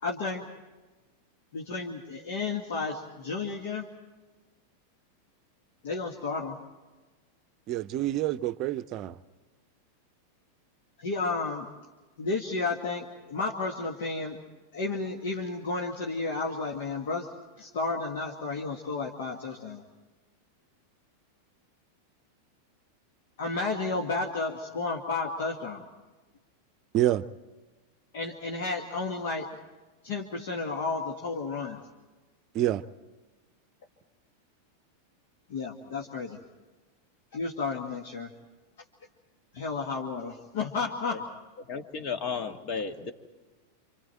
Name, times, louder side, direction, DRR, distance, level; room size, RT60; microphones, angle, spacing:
voice 1, 0.0-0.5 1.5-3.9 5.8-6.6 11.0-11.7 12.2-14.4 14.7-17.3 17.6-19.8 23.4-25.8 28.1-29.5 30.0-31.8 35.5-36.4 37.3-38.3 39.5-41.2, left 3 dB, 55° left, 2.0 m, -32 dB
voice 2, 7.7-9.2 26.9-27.3 32.5-32.8, right 13 dB, 35° right, 0.7 m, -27 dB
voice 3, 41.7-43.1, left 5 dB, 40° left, 1.8 m, -33 dB
28.5 x 27.0 x 4.5 m
figure-of-eight pair, 90°, 0 cm